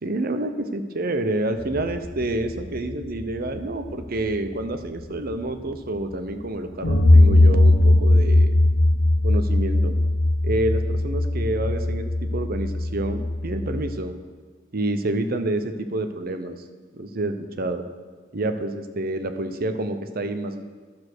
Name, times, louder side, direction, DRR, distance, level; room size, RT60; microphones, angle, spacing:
voice 1, 0.0-8.5 9.2-9.9 10.4-14.1 14.7-16.6 16.9-17.8 18.3-20.8, right 1 dB, 50° right, 8 dB, 0.8 m, -28 dB
sound 1, 1.6-4.3 5.3-5.4 6.8-14.0, left 1 dB, 90° left, 0.9 m, -19 dB
12.0 x 6.8 x 6.2 m, 1.5 s
head